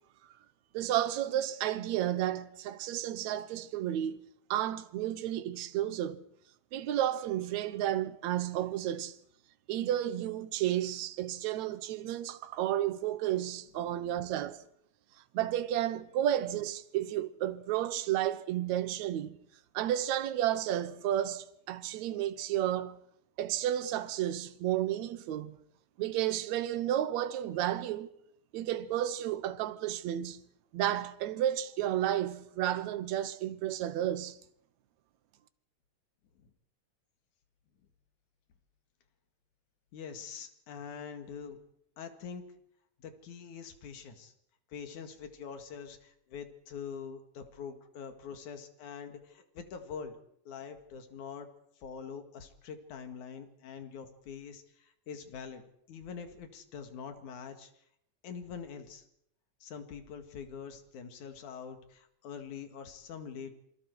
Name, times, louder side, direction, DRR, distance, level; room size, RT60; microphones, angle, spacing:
voice 1, 0.7-4.2 4.5-6.2 6.7-9.2 9.7-14.6 15.3-19.3 19.7-23.0 23.4-25.6 26.0-28.1 28.5-30.4 30.7-34.4, right 12 dB, 75° right, 2.3 m, -32 dB
voice 2, 39.9-41.6 42.0-42.4 43.0-44.3 44.7-50.2 50.4-51.5 51.8-55.6 55.9-57.7 58.2-59.0 59.6-63.5, left 6 dB, 80° left, 3.4 m, -44 dB
28.0 x 26.0 x 4.7 m
omnidirectional pair, 3.4 m